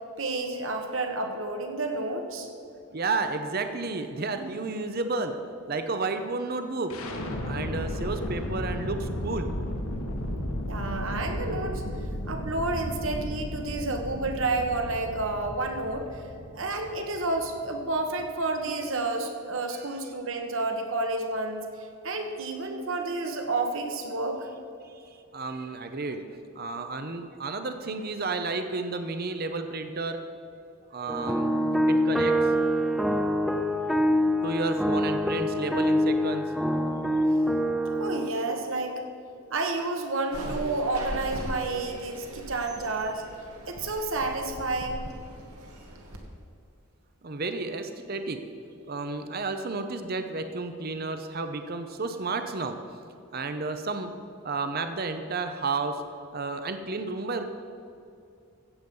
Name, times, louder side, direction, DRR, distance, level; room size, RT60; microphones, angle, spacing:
voice 1, 0.2-2.5 10.7-11.8 12.2-16.1 16.5-21.7 22.0-24.5 37.9-39.0 39.5-43.2 43.7-45.1, right 2 dB, 60° right, 4 dB, 1.4 m, -30 dB
voice 2, 2.9-5.3 5.6-6.9 7.4-9.5 19.7-20.0 24.8-26.2 26.5-30.2 30.9-31.5 31.9-32.3 34.4-36.4 47.2-48.4 48.9-52.8 53.3-54.1 54.4-56.0 56.3-57.4, right 3 dB, 40° right, 8 dB, 0.7 m, -32 dB
sound 1, 6.9-18.8, left 1 dB, 70° left, 1.5 m, -34 dB
sound 2, 31.1-38.3, equal, ahead, 0.6 m, -25 dB
sound 3, 40.3-46.2, right 1 dB, 85° right, 1.8 m, -39 dB
16.0 x 8.0 x 5.4 m, 2.6 s
head